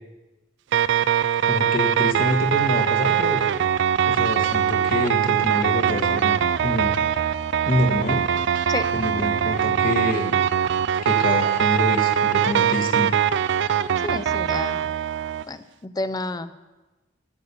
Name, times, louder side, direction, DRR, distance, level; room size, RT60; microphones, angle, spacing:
sound 1, 0.7-15.4, right 9 dB, 65° right, 0.3 m, -22 dB
voice 1, 1.5-3.4 4.0-7.0 7.6-8.2 8.9-10.4 11.0-13.1, left 1 dB, 50° left, 4 dB, 1.4 m, -26 dB
voice 2, 14.0-14.8 15.5-16.5, left 2 dB, 20° left, 13 dB, 0.5 m, -30 dB
10.5 x 8.3 x 6.8 m, 1.1 s
head